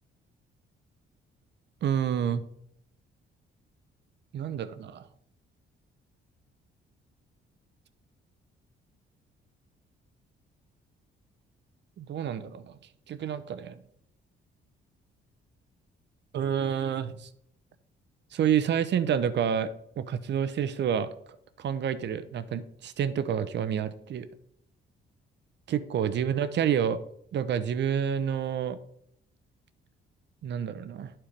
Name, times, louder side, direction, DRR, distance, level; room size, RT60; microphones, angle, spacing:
voice 1, 1.8-2.4 4.3-5.0 12.0-12.8 13.1-13.8 16.3-17.3 18.3-21.1 21.6-24.3 25.7-27.0 27.3-28.8 30.4-31.1, right 8 dB, 60° right, 14 dB, 0.8 m, -28 dB
11.5 x 4.5 x 5.1 m, 0.69 s
cardioid pair, 90°, 20 cm